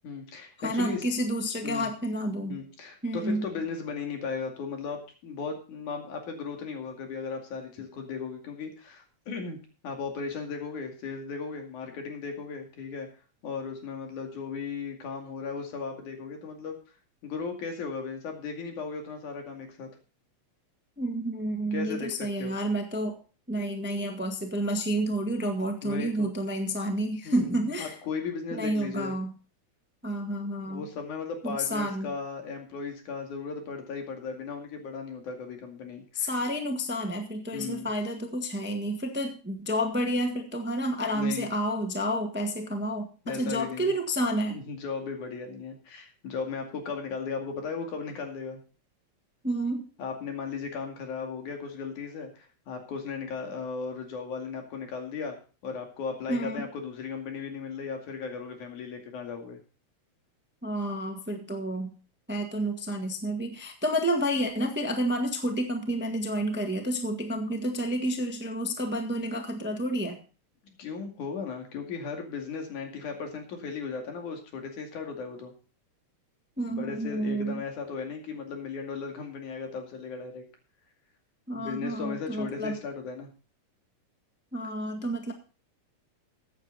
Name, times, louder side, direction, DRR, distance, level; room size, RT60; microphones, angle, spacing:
voice 1, 0.0-1.0 1.6-1.9 2.5-13.1 13.4-16.8 17.2-19.9 21.7-22.5 25.8-26.3 27.2-27.5 27.8-29.2 30.6-36.3 37.5-37.9 41.1-41.5 43.3-43.9 44.5-48.6 50.0-55.4 55.6-59.6 70.8-75.5 76.8-80.4 81.5-83.3, left 5 dB, 90° left, 3 dB, 3.8 m, -36 dB
voice 2, 0.6-2.6 3.0-3.5 21.0-23.2 23.5-27.9 28.5-29.3 30.0-30.9 31.4-32.1 36.1-44.6 49.4-49.8 56.3-56.7 60.6-61.9 62.3-70.2 76.6-77.6 81.5-82.8 84.5-85.3, right 1 dB, 5° right, 4 dB, 0.9 m, -30 dB
14.5 x 9.1 x 4.0 m, 0.36 s
omnidirectional pair, 3.4 m